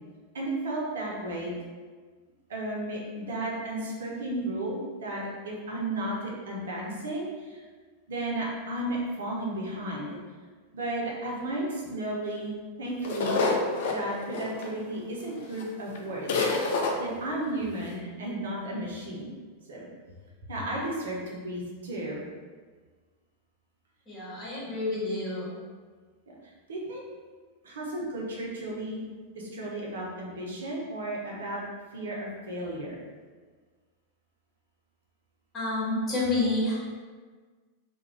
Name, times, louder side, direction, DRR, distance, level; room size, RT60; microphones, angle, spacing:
voice 1, 0.3-1.6 2.5-7.6 8.1-10.2 10.7-13.5 13.9-16.3 17.0-19.3 19.7-19.8 20.5-22.2 26.3-26.4 26.7-27.0 27.6-31.6 31.9-33.0, right 1 dB, 65° right, -3 dB, 0.6 m, -34 dB
sound 1, 13.0-15.0 15.6-15.7 15.9-16.0 16.3-16.9, left 3 dB, 55° left, 0.3 m, -27 dB
voice 2, 24.1-25.5 35.5-36.7, left 2 dB, 25° left, -9 dB, 1.2 m, -29 dB
2.3 x 2.1 x 3.1 m, 1.5 s
figure-of-eight pair, 90°, 0 cm